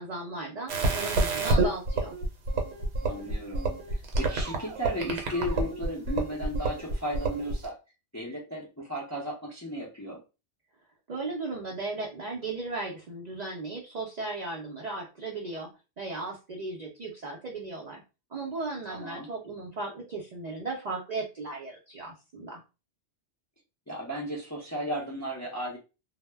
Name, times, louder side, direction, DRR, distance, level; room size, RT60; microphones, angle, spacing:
voice 1, 0.0-2.2 11.1-15.7 16.0-18.0 18.3-22.6, right 3 dB, 55° right, -2 dB, 0.4 m, -36 dB
sound 1, 0.7-7.7, right 2 dB, 75° right, 0.9 m, -29 dB
voice 2, 3.0-7.7 8.1-10.2 18.9-19.3 23.9-25.8, equal, 25° left, -3 dB, 0.3 m, -35 dB
2.1 x 2.0 x 3.2 m, 0.30 s
omnidirectional pair, 1.2 m